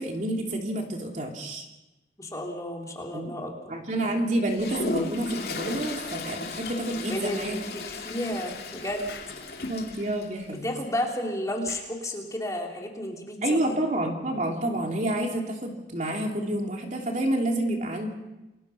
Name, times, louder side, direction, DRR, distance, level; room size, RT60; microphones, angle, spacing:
voice 1, 0.0-1.7 3.1-3.2 3.7-7.6 9.7-10.6 13.4-18.1, right 1 dB, 45° right, 1 dB, 3.1 m, -29 dB
voice 2, 2.2-3.8 7.1-9.1 10.5-13.8, left 1 dB, 20° left, 0 dB, 3.1 m, -32 dB
Toilet flush, 4.5-10.3, left 3 dB, 60° left, 2.9 m, -35 dB
Explosion, 9.1-9.4 11.6-12.0, left 6 dB, 85° left, 3.3 m, -45 dB
29.0 x 20.0 x 5.8 m, 1.0 s
head